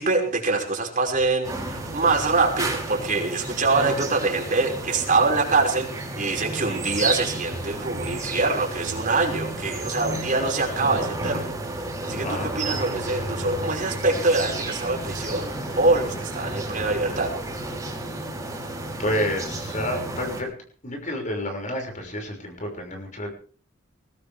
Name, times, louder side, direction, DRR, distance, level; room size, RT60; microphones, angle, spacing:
voice 1, 0.0-17.3, right 3 dB, 40° right, 0 dB, 5.6 m, -24 dB
sound 1, 1.4-20.4, right 2 dB, 15° right, 5.9 m, -32 dB
voice 2, 19.0-20.5 20.8-23.3, left 1 dB, 40° left, 3 dB, 6.1 m, -29 dB
21.0 x 19.5 x 3.6 m, 0.41 s
head